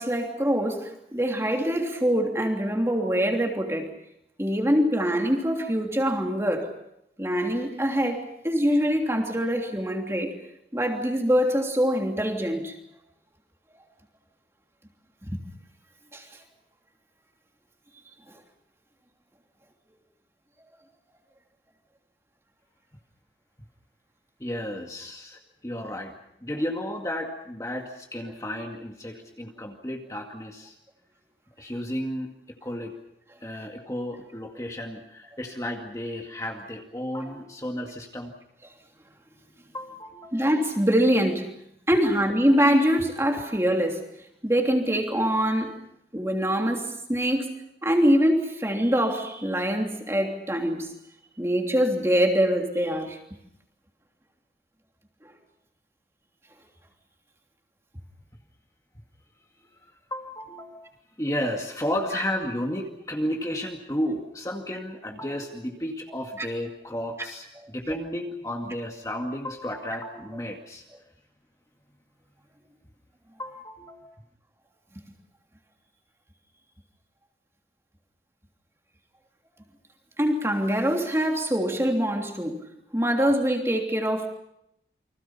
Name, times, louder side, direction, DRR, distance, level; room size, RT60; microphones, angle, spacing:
voice 1, 0.0-3.9 4.4-6.7 7.2-10.3 10.7-12.7 15.2-15.3 16.1-16.2 40.3-41.5 41.9-44.0 44.4-45.7 46.1-47.5 47.8-50.9 51.4-53.2 66.4-66.5 80.2-84.3, equal, 15° right, 2 dB, 3.1 m, -24 dB
voice 2, 24.4-26.1 26.4-30.7 31.6-32.3 32.6-32.9 33.4-38.3 39.7-40.4 42.0-42.1 60.1-60.9 61.2-70.9 73.4-74.1, equal, 20° left, 1 dB, 2.2 m, -33 dB
29.5 x 25.0 x 5.7 m, 0.77 s
head